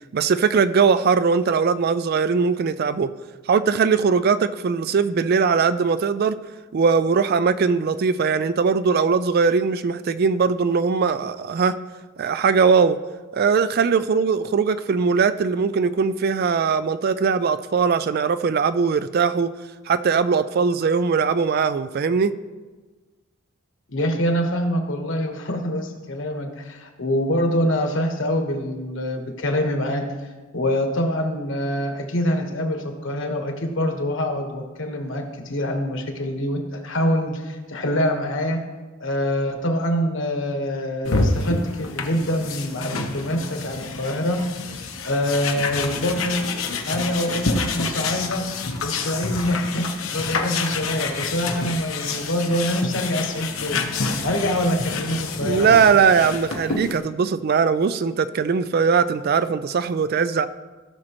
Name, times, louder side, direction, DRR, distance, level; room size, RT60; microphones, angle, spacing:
voice 1, 0.1-3.1 3.5-6.4 6.7-11.7 12.2-13.0 13.3-19.5 19.9-22.3 54.4-54.6 55.4-60.5, right 5 dB, 45° right, 13 dB, 0.3 m, -20 dB
voice 2, 23.9-30.0 30.5-38.6 39.0-44.4 45.0-46.4 46.9-48.4 48.8-53.9 54.2-55.7, equal, 60° left, 4 dB, 1.3 m, -25 dB
sound 1, 41.0-57.0, left 4 dB, 80° left, 1.0 m, -28 dB
16.0 x 6.3 x 3.0 m, 1.3 s
head